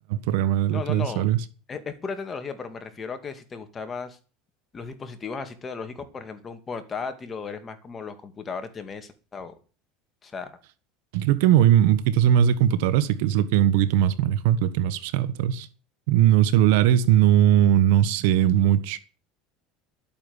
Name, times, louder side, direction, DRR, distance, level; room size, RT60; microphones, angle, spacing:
voice 1, 0.1-1.4 11.1-15.7 16.1-19.0, right 11 dB, 80° right, 1.3 m, -20 dB
voice 2, 0.7-1.3 1.7-4.2 4.7-9.6 10.2-10.5, left 5 dB, 25° left, 2.3 m, -35 dB
11.5 x 8.8 x 7.2 m
supercardioid pair, 115°, 0 cm